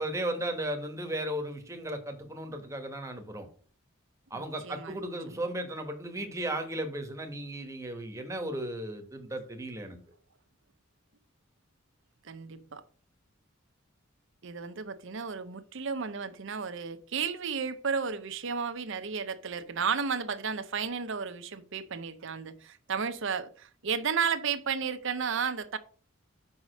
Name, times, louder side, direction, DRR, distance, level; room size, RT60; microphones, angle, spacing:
voice 1, 0.0-3.5 4.3-10.0, right 1 dB, 15° right, 1.2 m, -35 dB
voice 2, 4.3-5.4 12.2-12.8 14.4-25.8, right 6 dB, 65° right, 0.7 m, -33 dB
5.4 x 4.9 x 6.3 m
head